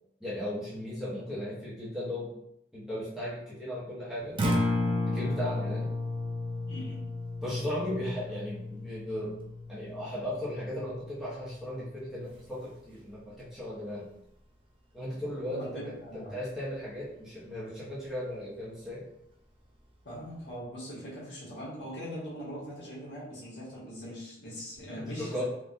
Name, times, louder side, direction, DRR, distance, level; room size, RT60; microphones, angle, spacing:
voice 1, 0.2-2.3 2.7-4.4 5.1-5.9 7.4-9.4 9.7-14.0 14.9-19.1 25.0-25.4, left 1 dB, ahead, -9 dB, 0.8 m, -36 dB
Acoustic guitar, 4.2-12.4, left 2 dB, 30° right, 0.4 m, -34 dB
voice 2, 6.7-7.1 15.5-16.4 20.0-25.4, equal, 70° left, -7 dB, 1.4 m, -41 dB
3.5 x 2.2 x 2.6 m, 0.78 s
head